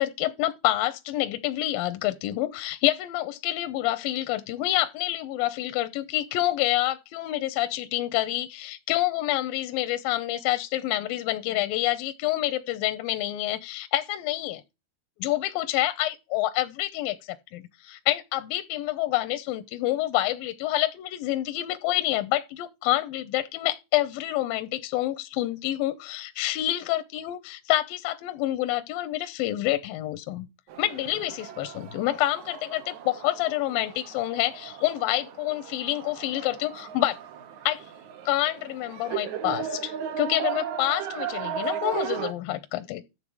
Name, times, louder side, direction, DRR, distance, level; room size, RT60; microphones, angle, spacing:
voice 1, 0.0-14.6 15.2-30.5 30.8-37.2 37.7-37.8 38.3-43.0, left 15 dB, 80° left, 2.3 m, -27 dB
sound 1, 30.7-42.3, right 9 dB, 65° right, 2.0 m, -36 dB
12.5 x 7.5 x 4.8 m
omnidirectional pair, 4.6 m